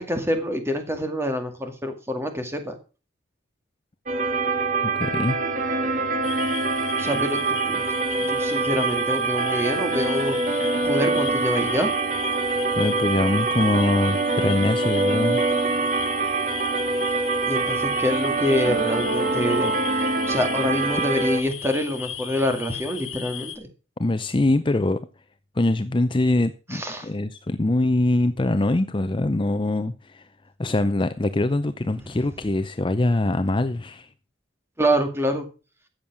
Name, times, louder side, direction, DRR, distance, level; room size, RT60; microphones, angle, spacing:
voice 1, 0.0-2.7 7.0-7.4 7.6-7.9 8.3-10.4 10.8-11.9 17.5-19.7 20.3-23.7 26.7-27.1 34.8-35.5, equal, 15° right, 2.2 m, -26 dB
sound 1, 4.1-21.4, right 3 dB, 40° right, 1.8 m, -24 dB
voice 2, 4.8-5.4 12.7-15.4 24.0-25.0 25.6-30.2 30.6-34.1, left 2 dB, 25° left, 0.6 m, -23 dB
sound 2, 6.2-23.6, left 10 dB, 75° left, 2.3 m, -36 dB
14.0 x 7.3 x 6.1 m
head